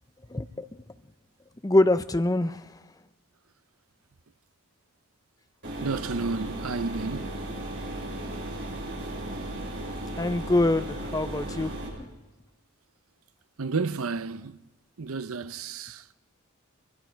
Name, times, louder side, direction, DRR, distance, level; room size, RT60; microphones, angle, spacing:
voice 1, 0.3-0.7 1.6-2.7 10.2-11.7, left 1 dB, 15° left, 0.6 m, -24 dB
sound 1, 5.6-11.9, right 1 dB, 60° right, 8.0 m, -35 dB
voice 2, 5.8-7.4 13.6-14.6 15.0-16.1, right 4 dB, 75° right, 0.7 m, -31 dB
24.0 x 23.5 x 4.6 m
head